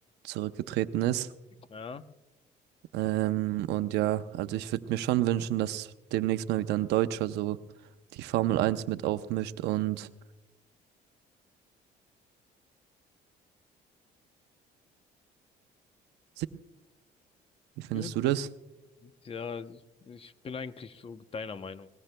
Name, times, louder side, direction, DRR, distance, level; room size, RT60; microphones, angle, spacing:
voice 1, 0.2-1.3 2.9-7.6 8.1-10.1 16.4-16.5 17.8-18.5, right 14 dB, 85° right, 11 dB, 0.7 m, -29 dB
voice 2, 1.7-2.0 17.9-18.1 19.0-21.9, left 5 dB, 35° left, 12 dB, 0.8 m, -40 dB
21.0 x 19.0 x 2.2 m, 1.0 s
cardioid pair, 110°, 17 cm